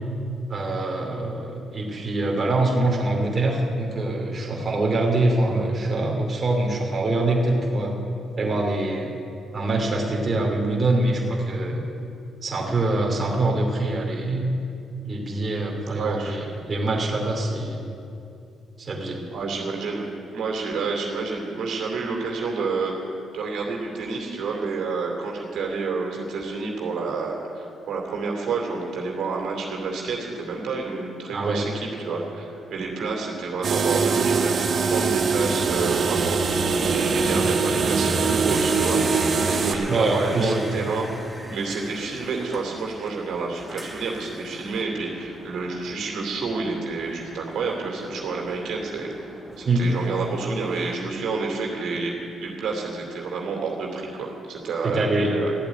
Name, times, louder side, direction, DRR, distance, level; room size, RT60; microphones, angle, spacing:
voice 1, 0.5-8.0 8.4-9.1 9.5-11.8 12.4-14.5 15.0-17.9 18.8-19.2 31.3-31.6 39.9-40.8 49.6-49.9 54.8-55.3, right 2 dB, 35° right, -1 dB, 2.8 m, -24 dB
voice 2, 16.0-16.4 19.3-20.1 20.3-23.0 23.3-41.1 41.5-49.3 49.6-52.1 52.4-55.5, right 4 dB, 75° right, -1 dB, 2.9 m, -29 dB
sound 1, 33.6-39.7, right 4 dB, 50° right, 1.4 m, -22 dB
sound 2, 36.6-51.0, equal, ahead, 1.4 m, -41 dB
14.0 x 8.3 x 9.3 m, 2.6 s
cardioid pair, 90°, 0 cm